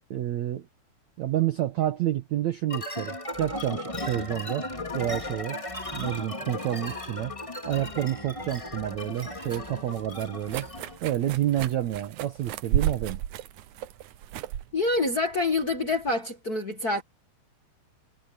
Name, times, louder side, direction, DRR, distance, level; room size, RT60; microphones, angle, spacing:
voice 1, 0.1-0.7 1.2-4.7 4.9-5.6 5.9-7.3 7.6-10.7 11.0-13.2, right 12 dB, 70° right, 1.7 m, -29 dB
sound 1, 2.7-11.0, left 2 dB, 10° left, 2.1 m, -36 dB
sound 2, 8.4-16.1, right 11 dB, 90° right, 1.7 m, -34 dB
voice 2, 14.7-17.0, left 2 dB, 50° left, 1.1 m, -26 dB
omnidirectional pair, 4.7 m